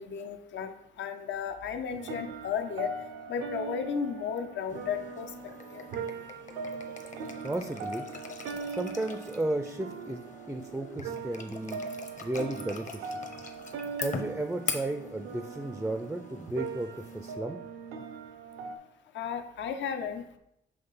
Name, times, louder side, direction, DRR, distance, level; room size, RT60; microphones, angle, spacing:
voice 1, 0.0-2.9 3.3-5.3 5.7-5.8 19.1-20.4, left 7 dB, 70° left, 8 dB, 0.7 m, -34 dB
sound 1, 2.0-18.8, right 5 dB, 90° right, 0.7 m, -40 dB
sound 2, 4.7-17.3, left 4 dB, 40° left, 0.9 m, -43 dB
voice 2, 7.4-8.1 8.7-11.8 12.2-13.1 14.0-17.6, right 1 dB, 5° right, 7 dB, 0.4 m, -34 dB
5.8 x 3.1 x 5.5 m, 0.80 s
cardioid pair, 90°, 20 cm